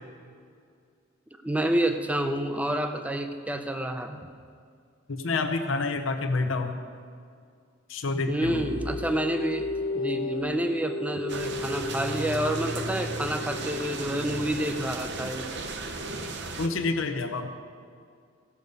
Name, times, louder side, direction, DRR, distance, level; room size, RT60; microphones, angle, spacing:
voice 1, 1.4-4.2 8.3-9.7 9.9-15.5, right 1 dB, 5° right, 6 dB, 0.6 m, -28 dB
voice 2, 5.1-6.8 7.9-8.6 16.6-17.5, left 3 dB, 70° left, 6 dB, 0.8 m, -28 dB
sound 1, 8.4-14.4, left 2 dB, 90° left, 1.4 m, -34 dB
sound 2, 11.3-16.7, right 3 dB, 60° right, 0.8 m, -36 dB
16.0 x 6.8 x 5.3 m, 2.2 s
head